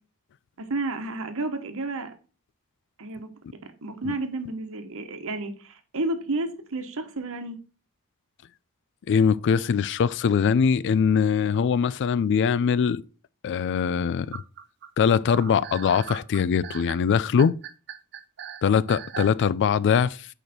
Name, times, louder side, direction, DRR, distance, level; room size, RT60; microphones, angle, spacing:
voice 1, 0.6-2.1 3.0-3.3 3.6-7.6, right 2 dB, 65° right, 1.2 m, -31 dB
voice 2, 9.1-13.0 13.4-14.4 15.0-17.5 18.6-20.3, left 6 dB, 55° left, 0.3 m, -22 dB
sound 1, 14.3-19.4, right 8 dB, 50° right, 0.6 m, -38 dB
6.6 x 5.0 x 4.3 m
head